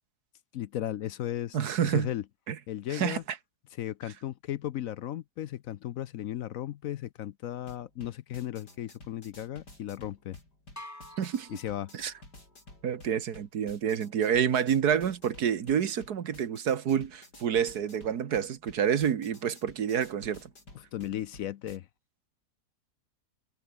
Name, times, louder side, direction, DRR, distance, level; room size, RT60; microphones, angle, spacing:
voice 1, 0.5-1.6 1.8-2.2 2.7-3.2 3.8-10.4 11.5-11.9 20.7-21.9, left 12 dB, 65° left, 0.9 m, -35 dB
voice 2, 1.5-2.1 2.5-2.6 2.9-3.4 11.2-11.5 11.9-12.1 12.8-20.5, right 8 dB, 75° right, 1.8 m, -28 dB
sound 1, 7.6-21.8, left 2 dB, 85° left, 8.3 m, -53 dB
sound 2, 10.8-12.5, left 1 dB, 10° left, 2.2 m, -48 dB
omnidirectional pair, 1.7 m